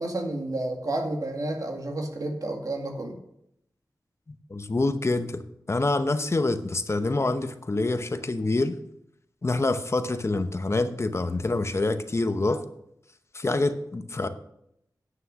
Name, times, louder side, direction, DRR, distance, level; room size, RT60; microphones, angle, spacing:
voice 1, 0.0-3.2, right 2 dB, 60° right, 3 dB, 1.9 m, -30 dB
voice 2, 4.3-5.4 5.7-8.8 9.4-12.6 13.3-14.3, left 2 dB, 40° left, 10 dB, 0.8 m, -26 dB
9.6 x 6.4 x 6.3 m, 0.78 s
wide cardioid pair, 65°, 7 cm